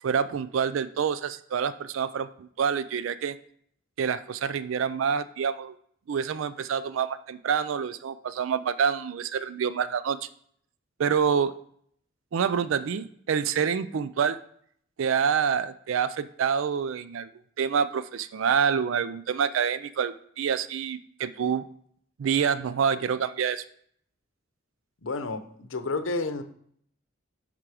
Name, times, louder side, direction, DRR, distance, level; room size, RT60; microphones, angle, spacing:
voice 1, 0.0-3.3 4.0-5.7 6.1-10.3 11.0-11.6 12.3-14.4 15.0-17.3 17.6-21.6 22.2-23.6, right 7 dB, 85° right, 14 dB, 0.4 m, -27 dB
voice 2, 25.0-26.4, left 3 dB, 85° left, 9 dB, 0.7 m, -30 dB
10.5 x 3.7 x 4.8 m, 0.64 s
head